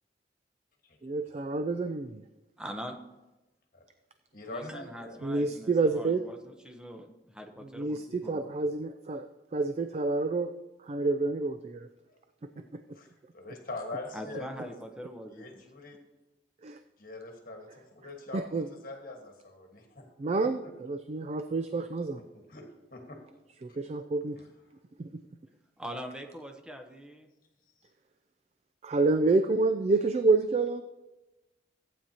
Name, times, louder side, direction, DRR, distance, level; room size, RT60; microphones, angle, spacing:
voice 1, 1.0-2.2 5.2-6.2 7.8-10.5 10.9-11.9 12.7-12.8 16.6-16.8 18.3-18.7 20.2-22.2 23.6-24.4 25.0-25.1 28.8-30.8, right 3 dB, 35° right, 9 dB, 0.3 m, -28 dB
voice 2, 2.6-3.0 4.5-8.5 14.1-15.6 25.8-27.3, equal, 5° right, 4 dB, 0.8 m, -43 dB
voice 3, 4.3-5.2 12.1-12.2 12.5-12.6 12.9-13.1 13.3-14.7 15.3-16.0 17.0-20.1 20.4-20.7 22.2-23.2 23.7-23.8 24.4-24.5 27.8-27.9, left 2 dB, 50° left, 2 dB, 1.4 m, -43 dB
14.5 x 9.0 x 2.8 m, 1.0 s
head